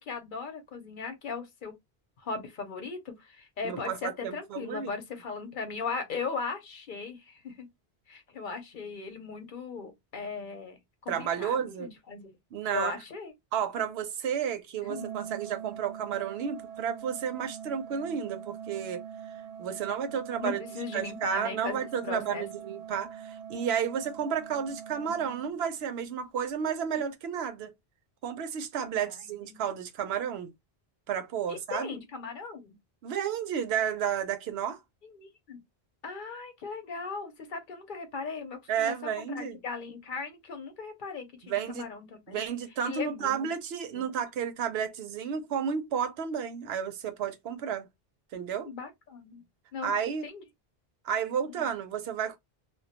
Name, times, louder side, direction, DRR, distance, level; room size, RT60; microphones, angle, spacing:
voice 1, 0.0-1.7 2.2-7.7 8.1-10.8 11.0-12.3 12.7-13.3 14.9-15.1 20.4-22.5 29.0-29.1 29.5-29.6 31.5-32.8 35.0-35.6 36.0-42.4 42.8-43.5 43.9-44.1 48.6-49.4 49.7-50.4 51.4-51.7, left 5 dB, 60° left, 0.7 m, -38 dB
voice 2, 3.6-4.9 11.1-11.9 12.5-13.0 13.5-19.0 19.6-20.6 20.9-27.7 28.2-30.5 31.1-31.9 33.0-34.8 38.7-39.6 41.4-41.8 42.3-47.9 48.3-48.7 49.8-50.3 51.0-52.4, right 8 dB, 80° right, 0.8 m, -32 dB
Organ, 14.8-25.9, right 8 dB, 55° right, 0.6 m, -43 dB
2.2 x 2.1 x 2.7 m
omnidirectional pair, 1.0 m